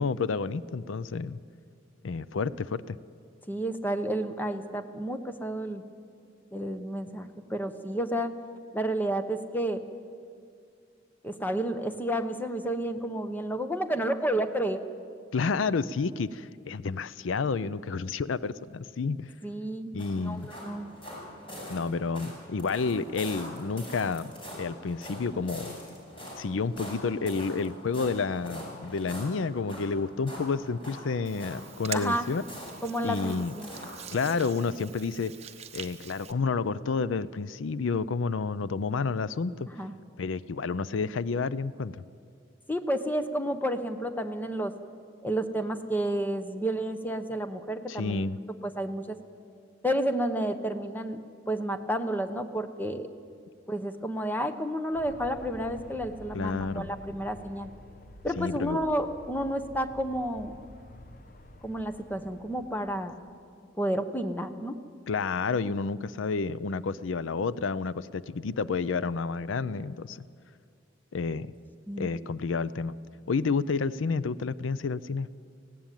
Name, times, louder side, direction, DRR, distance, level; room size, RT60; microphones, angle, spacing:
voice 1, 0.0-1.4 2.0-3.0 15.3-19.3 19.9-20.5 21.7-24.3 24.6-25.8 26.4-32.4 33.0-33.5 34.1-35.3 35.7-39.7 40.2-42.0 47.9-48.4 56.3-56.9 58.4-58.8 65.1-70.2 71.1-71.5 72.0-73.0 73.3-75.3, left 4 dB, 80° left, 17 dB, 0.5 m, -30 dB
voice 2, 3.5-5.8 6.5-8.4 8.7-9.8 11.2-14.8 19.4-19.9 20.2-20.9 31.9-32.3 32.8-33.7 39.8-39.9 42.7-44.7 45.2-48.3 48.6-49.2 49.8-51.2 51.5-53.1 53.7-57.7 58.2-60.5 61.6-63.1 63.8-64.7 71.9-72.1, right 1 dB, 10° left, 8 dB, 0.9 m, -31 dB
sound 1, 20.0-34.5, equal, 30° left, 6.6 m, -43 dB
Hands, 31.2-36.3, right 8 dB, 35° right, 0.9 m, -44 dB
Aircraft, 54.9-63.3, left 1 dB, 45° left, 1.1 m, -49 dB
18.5 x 16.0 x 9.1 m, 2.3 s
head